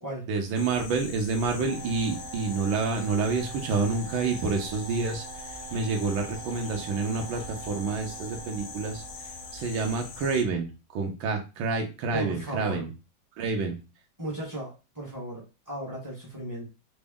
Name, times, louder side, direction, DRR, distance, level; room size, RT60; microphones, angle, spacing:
voice 1, 0.3-12.9 13.4-13.8, right 4 dB, 80° right, 2 dB, 1.6 m, -28 dB
sound 1, 0.5-10.4, left 5 dB, 75° left, 1.1 m, -43 dB
sound 2, 1.7-10.6, right 6 dB, 55° right, 1.1 m, -44 dB
voice 2, 12.1-12.9 14.2-16.7, right 1 dB, 15° right, -5 dB, 0.6 m, -36 dB
4.1 x 2.0 x 3.5 m, 0.29 s
omnidirectional pair, 2.2 m